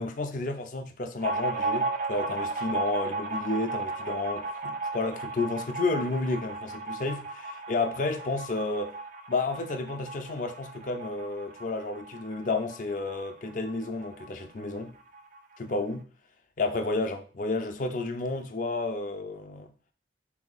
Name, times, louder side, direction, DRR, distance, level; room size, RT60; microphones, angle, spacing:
voice 1, 0.0-8.9 9.3-14.9 15.6-16.1 16.6-19.7, left 3 dB, 45° left, 0.4 m, -31 dB
sound 1, 1.2-14.3 14.6-14.7 15.0-15.8, right 3 dB, 45° right, 0.4 m, -35 dB
3.8 x 2.7 x 3.9 m
head